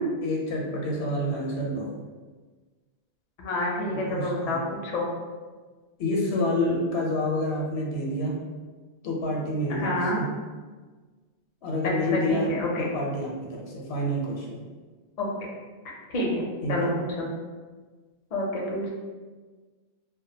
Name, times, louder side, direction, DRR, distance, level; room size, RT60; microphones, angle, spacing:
voice 1, 0.2-2.0 3.9-4.6 6.0-8.4 9.0-10.3 11.6-12.5 12.9-14.6 16.6-17.0, left 1 dB, 75° left, -2 dB, 0.8 m, -28 dB
voice 2, 3.4-5.1 6.5-6.8 9.7-10.2 11.8-12.9 15.2-15.3 16.1-17.3 18.3-18.9, left 1 dB, 50° left, -3 dB, 0.5 m, -28 dB
2.3 x 2.1 x 2.6 m, 1.4 s
omnidirectional pair, 1.1 m